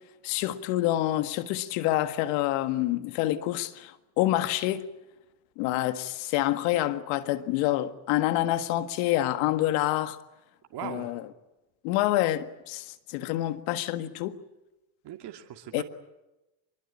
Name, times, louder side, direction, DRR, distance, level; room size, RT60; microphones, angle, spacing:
voice 1, 0.2-4.9 5.6-10.2 10.8-11.2 11.8-14.4 15.7-15.8, left 14 dB, 75° left, 1.8 m, -27 dB
voice 2, 10.7-11.1 15.0-15.8, right 11 dB, 50° right, 2.6 m, -39 dB
25.0 x 22.5 x 8.6 m
supercardioid pair, 90°, 49 cm